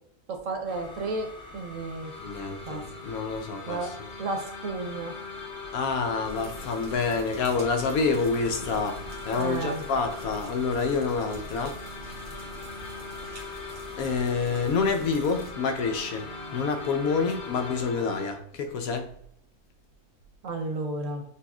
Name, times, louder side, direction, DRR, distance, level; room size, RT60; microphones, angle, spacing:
voice 1, 0.3-2.1 2.7-2.8 3.7-3.9 4.2-5.1 9.4-9.8 20.4-21.2, right 2 dB, 60° right, 1.0 m, -32 dB
sound 1, 0.7-17.9, left 2 dB, 5° left, 0.3 m, -46 dB
sound 2, 2.0-18.3, left 4 dB, 50° left, 1.1 m, -42 dB
voice 2, 2.2-3.9 5.7-11.8 13.2-13.6 14.0-19.2, left 4 dB, 70° left, 1.0 m, -28 dB
sound 3, 6.2-15.5, right 1 dB, 35° right, 1.0 m, -45 dB
6.7 x 2.4 x 2.3 m
omnidirectional pair, 1.6 m